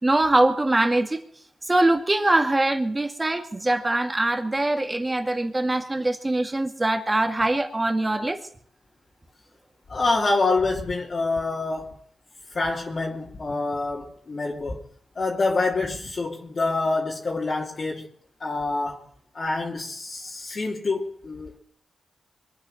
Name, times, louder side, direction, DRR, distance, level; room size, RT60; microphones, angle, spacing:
voice 1, 0.0-1.2 1.7-8.4, right 2 dB, 20° right, 2.3 m, -23 dB
voice 2, 9.9-12.0 12.5-14.8 15.1-18.1 18.4-19.0 19.3-21.5, left 3 dB, 50° left, 2.6 m, -26 dB
23.0 x 8.9 x 6.6 m
cardioid pair, 70°, 0 cm